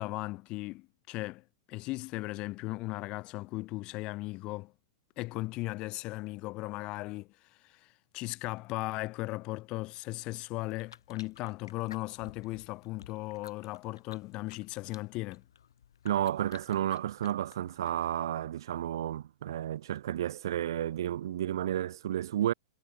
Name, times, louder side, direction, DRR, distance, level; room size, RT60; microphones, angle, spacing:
voice 1, 0.0-4.7 5.2-7.3 7.6-15.4, left 21 dB, 40° left, 0.8 m, -37 dB
sound 1, 10.7-18.2, left 9 dB, 80° left, 5.9 m, -55 dB
voice 2, 16.0-22.5, right 11 dB, 70° right, 0.5 m, -32 dB
hypercardioid pair, 120°, 2 cm